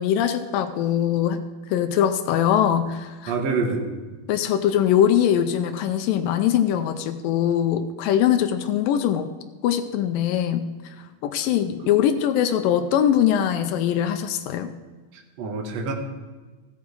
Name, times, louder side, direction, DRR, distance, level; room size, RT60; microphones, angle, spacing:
voice 1, 0.0-3.3 4.3-9.3 9.6-10.7 11.2-14.7, left 10 dB, 80° left, 9 dB, 2.1 m, -22 dB
voice 2, 3.3-3.9 15.1-15.9, right 4 dB, 65° right, 3 dB, 1.8 m, -26 dB
14.5 x 8.5 x 4.7 m, 1.3 s
omnidirectional pair, 4.4 m